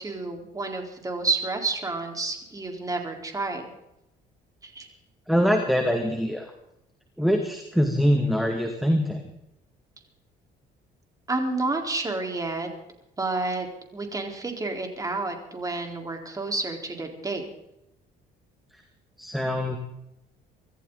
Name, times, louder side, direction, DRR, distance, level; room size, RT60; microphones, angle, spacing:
voice 1, 0.0-3.7 4.6-4.9 11.3-12.7 13.2-13.7 13.9-17.4, right 3 dB, 20° right, 3 dB, 4.2 m, -30 dB
voice 2, 5.3-6.5 7.2-9.2 19.2-19.8, equal, ahead, 4 dB, 2.2 m, -23 dB
25.5 x 14.0 x 4.0 m, 0.84 s
cardioid pair, 110°, 17 cm